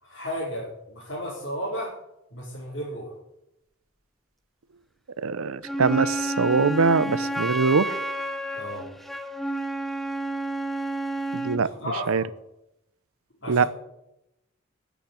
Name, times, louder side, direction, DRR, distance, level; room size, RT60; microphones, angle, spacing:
voice 1, 0.0-1.9 2.3-3.1 8.5-8.9 11.6-12.2 13.4-13.7, equal, 60° left, 4.7 m, -33 dB
voice 2, 5.2-8.0 11.3-11.7 12.1-12.2 13.5-13.6, right 4 dB, 90° right, 0.6 m, -22 dB
Wind instrument woodwind instrument, 5.6-11.7, right 1 dB, ahead, 0.7 m, -30 dB
10.5 x 8.7 x 9.5 m
head